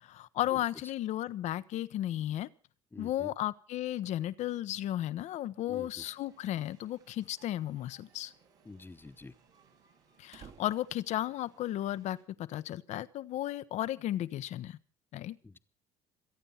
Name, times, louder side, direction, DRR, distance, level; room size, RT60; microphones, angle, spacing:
voice 1, 0.0-2.5 3.0-8.3 10.2-14.8 15.1-15.4, left 13 dB, 65° left, 1.0 m, -34 dB
voice 2, 2.9-3.3 5.7-6.0 8.6-9.3 15.4-15.6, left 3 dB, 15° left, 1.3 m, -47 dB
sound 1, 6.0-12.2, right 6 dB, 85° right, 6.8 m, -66 dB
sound 2, 7.3-7.6 8.0-8.1 8.3-8.4 8.8-11.8, right 7 dB, 60° right, 2.9 m, -58 dB
27.0 x 9.0 x 5.7 m
supercardioid pair, 75°, 13 cm